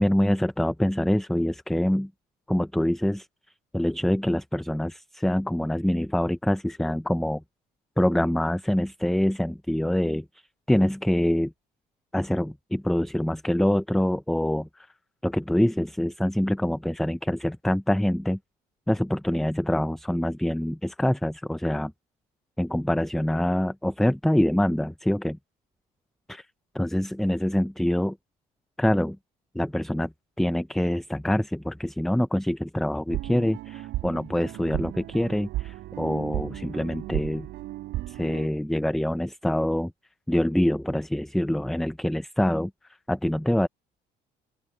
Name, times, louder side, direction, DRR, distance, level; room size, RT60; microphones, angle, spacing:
voice 1, 0.0-2.1 2.5-3.3 3.7-7.4 8.0-10.3 10.7-11.5 12.1-14.9 15.2-18.4 18.9-21.9 22.6-25.4 26.3-26.4 26.7-28.2 28.8-29.2 29.5-30.1 30.4-37.5 38.1-39.9 40.3-42.7 43.1-43.7, left 1 dB, ahead, 0.6 m, -25 dB
sound 1, 33.1-38.5, right 16 dB, 80° right, 6.4 m, -34 dB
open air
cardioid pair, 110°, 17 cm